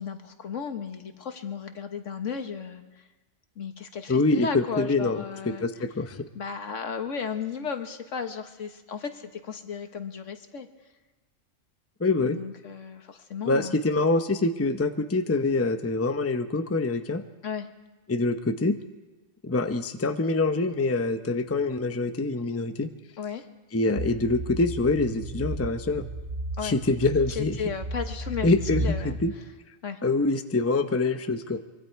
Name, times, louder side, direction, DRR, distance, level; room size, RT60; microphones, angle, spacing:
voice 1, 0.0-3.1 3.6-5.7 6.3-10.7 12.2-13.8 17.4-17.7 23.2-23.4 26.6-26.8 27.3-28.5 28.8-29.2 29.8-30.0, left 6 dB, 70° left, 7 dB, 1.6 m, -34 dB
voice 2, 4.1-5.2 5.6-6.2 12.0-12.4 13.5-17.2 18.1-18.8 19.4-22.9 23.7-26.1 26.6-27.5 28.4-29.3 30.0-31.6, left 3 dB, 15° left, 7 dB, 0.7 m, -25 dB
sound 1, 24.0-29.3, right 1 dB, 75° right, 3.0 m, -34 dB
24.0 x 23.5 x 4.6 m, 1.2 s
omnidirectional pair, 1.3 m